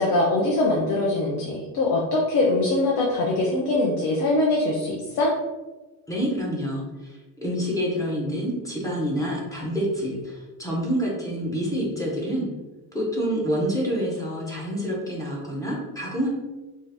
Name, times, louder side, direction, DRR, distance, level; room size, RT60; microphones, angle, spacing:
voice 1, 0.0-5.3, left 2 dB, 65° left, -2 dB, 0.6 m, -22 dB
voice 2, 6.1-12.5 12.9-16.3, equal, 10° left, -4 dB, 0.5 m, -27 dB
2.7 x 2.4 x 3.3 m, 1.2 s
cardioid pair, 170°, 37 cm